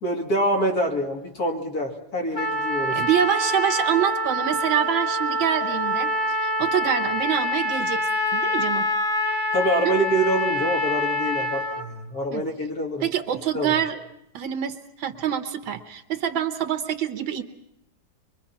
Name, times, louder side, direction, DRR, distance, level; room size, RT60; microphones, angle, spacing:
voice 1, 0.0-3.0 9.5-13.1 13.5-13.8, right 1 dB, 50° left, 1 dB, 2.7 m, -25 dB
Trumpet, 2.3-11.8, equal, 15° left, 1.3 m, -25 dB
voice 2, 3.0-8.0 8.3-8.9 9.8-9.9 12.3-12.4 13.0-14.0 14.3-17.4, right 9 dB, 75° right, 9 dB, 1.9 m, -26 dB
24.5 x 23.0 x 5.9 m, 0.80 s
omnidirectional pair, 2.1 m